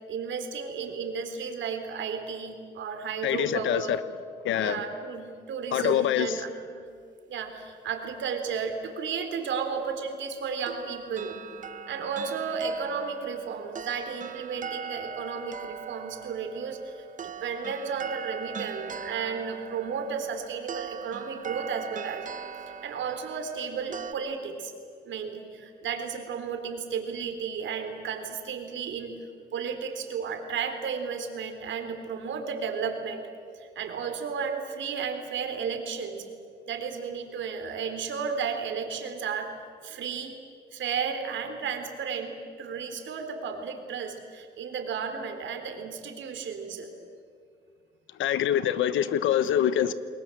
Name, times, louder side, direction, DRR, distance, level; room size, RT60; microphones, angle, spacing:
voice 1, 0.1-4.0 4.6-6.8 7.3-11.4 11.9-22.3 22.8-24.7 25.0-29.1 29.5-33.3 33.5-36.2 36.7-39.5 39.8-40.4 40.7-46.9, right 6 dB, 70° right, 3.8 m, -33 dB
voice 2, 3.2-4.0 4.4-4.8 5.7-6.4 48.2-49.9, left 10 dB, 80° left, 1.2 m, -25 dB
sound 1, 10.7-24.1, right 7 dB, 40° right, 1.0 m, -40 dB
29.0 x 21.0 x 7.8 m
cardioid pair, 90°, 20 cm